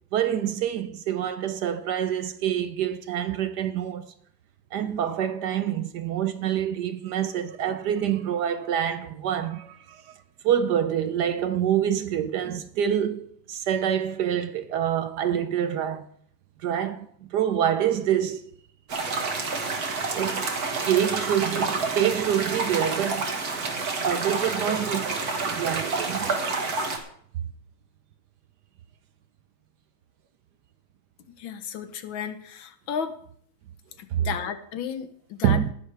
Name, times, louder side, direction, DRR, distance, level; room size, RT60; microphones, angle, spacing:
voice 1, 0.1-4.1 4.7-10.1 10.4-16.1 16.6-18.5 20.1-20.5 20.8-23.4 24.0-26.4 34.1-34.3 35.4-35.7, right 9 dB, 65° right, 1.1 m, -26 dB
sound 1, 18.9-27.0, right 3 dB, 50° right, 2.1 m, -28 dB
voice 2, 31.4-33.1 34.0-35.7, left 7 dB, 80° left, 1.8 m, -33 dB
19.0 x 10.0 x 3.4 m
omnidirectional pair, 2.2 m